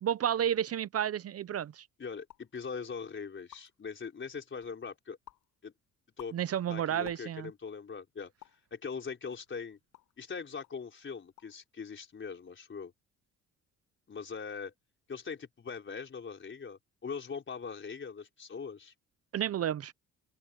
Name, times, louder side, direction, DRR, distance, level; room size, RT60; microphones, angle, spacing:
voice 1, 0.0-1.8 6.3-7.5 19.3-19.9, right 10 dB, 50° right, 0.7 m, -31 dB
voice 2, 2.0-5.2 5.6-5.7 6.2-6.4 6.7-8.3 8.7-9.8 10.2-12.9 14.1-14.7 15.1-18.9, left 5 dB, 40° left, 4.4 m, -41 dB
sound 1, 2.2-2.6 3.1-3.2 3.4-3.9 4.4-4.8 5.3-5.5 6.0-7.6 8.4-8.7 9.3-10.2 10.6-10.8 11.2-11.7 11.9-12.4, left 15 dB, 85° left, 6.7 m, -56 dB
open air
cardioid pair, 90°, 30 cm